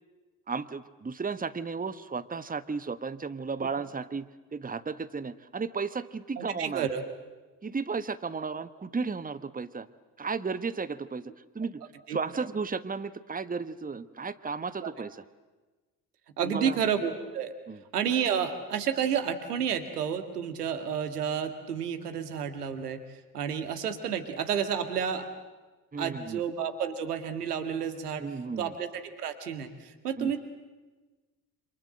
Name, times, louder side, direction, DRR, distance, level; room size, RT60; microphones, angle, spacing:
voice 1, 0.5-6.9 7.6-9.9 10.2-11.8 12.1-15.2 16.4-16.8 17.7-17.8 25.9-26.4 28.2-28.7 30.2-30.3, right 5 dB, 20° right, 14 dB, 1.4 m, -34 dB
voice 2, 6.4-7.0 12.1-12.2 14.8-14.9 16.4-17.5 17.9-23.0 23.3-25.3 26.0-28.3 28.6-30.4, right 7 dB, 85° right, 9 dB, 2.0 m, -30 dB
28.5 x 27.0 x 7.8 m, 1.2 s
figure-of-eight pair, 50°, 45 cm